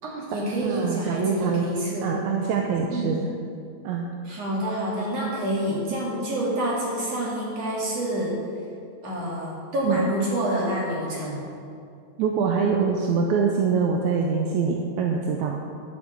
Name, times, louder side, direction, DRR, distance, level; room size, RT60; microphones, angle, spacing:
voice 1, 0.0-2.1 2.9-3.1 4.2-8.4 9.0-11.4, right 1 dB, 55° right, -6 dB, 4.0 m, -27 dB
voice 2, 0.6-1.7 2.0-3.3 3.8-4.1 9.8-10.0 12.2-15.6, right 5 dB, 80° right, 1 dB, 2.1 m, -24 dB
12.5 x 6.0 x 7.9 m, 2.5 s
omnidirectional pair, 3.5 m